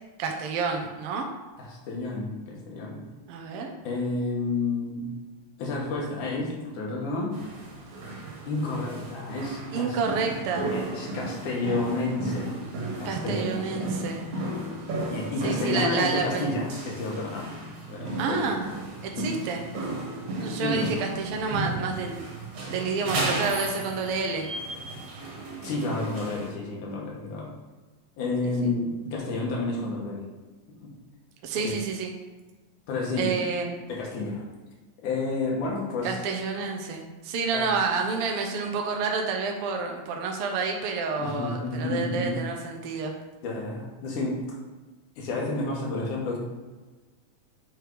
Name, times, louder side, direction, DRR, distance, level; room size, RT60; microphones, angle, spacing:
voice 1, 0.2-1.3 3.3-3.7 7.9-8.3 9.7-10.7 13.0-14.3 15.4-16.5 18.2-18.6 19.0-19.6 20.4-22.3 22.7-24.5 28.4-28.7 31.4-32.1 33.2-33.8 36.0-43.1, right 4 dB, 85° right, 2 dB, 1.2 m, -29 dB
voice 2, 1.6-3.0 3.8-5.1 5.6-7.4 8.4-10.0 10.6-12.6 13.0-13.8 15.1-17.6 17.9-18.4 19.2-19.3 20.6-20.9 25.6-27.5 28.2-30.3 30.8-30.9 31.6-31.7 32.9-33.3 33.9-34.4 35.0-36.1 37.5-37.7 41.2-42.4 43.4-44.6 45.2-46.4, left 3 dB, 80° left, -2 dB, 2.8 m, -30 dB
sound 1, 7.3-26.5, right 2 dB, 70° right, 2.7 m, -34 dB
7.5 x 3.5 x 4.7 m, 1.3 s
omnidirectional pair, 3.5 m